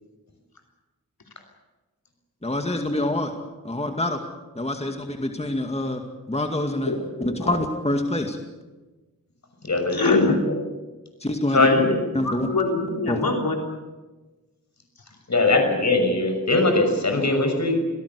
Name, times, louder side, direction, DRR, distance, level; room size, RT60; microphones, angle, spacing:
voice 1, 2.4-3.3 3.6-4.2 4.6-6.0 6.3-6.9 7.2-8.4 11.2-11.7 12.1-12.5 13.1-13.2, left 1 dB, 20° left, 4 dB, 2.3 m, -26 dB
voice 2, 6.9-7.6 9.9-10.4 11.7-13.6, left 3 dB, 80° left, 2 dB, 3.9 m, -24 dB
voice 3, 9.6-10.2 10.5-10.6 11.5-11.8 15.3-17.9, left 2 dB, 50° left, 4 dB, 6.3 m, -20 dB
27.0 x 18.0 x 8.4 m, 1.2 s
wide cardioid pair, 90°, 35 cm